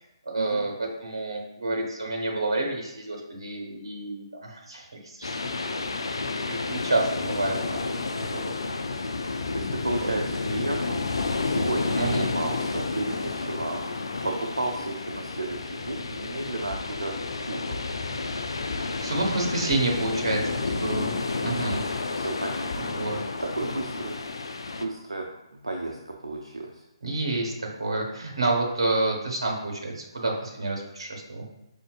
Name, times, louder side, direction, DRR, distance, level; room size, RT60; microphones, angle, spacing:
voice 1, 0.2-5.4 6.0-8.5 10.0-10.3 11.9-12.3 18.7-21.8 22.8-23.2 27.0-31.4, right 2 dB, 65° right, 0 dB, 1.0 m, -29 dB
sound 1, 5.2-24.8, left 3 dB, 65° left, 0.3 m, -31 dB
voice 2, 9.5-11.0 11.4-13.8 14.2-17.2 17.5-17.8 21.4-21.6 22.1-24.2 24.7-25.3 25.5-26.8, right 2 dB, 80° right, 1 dB, 0.4 m, -33 dB
sound 2, 16.2-22.8, left 3 dB, 40° left, 1.2 m, -41 dB
5.1 x 2.4 x 2.4 m, 0.86 s
figure-of-eight pair, 140°, 3 cm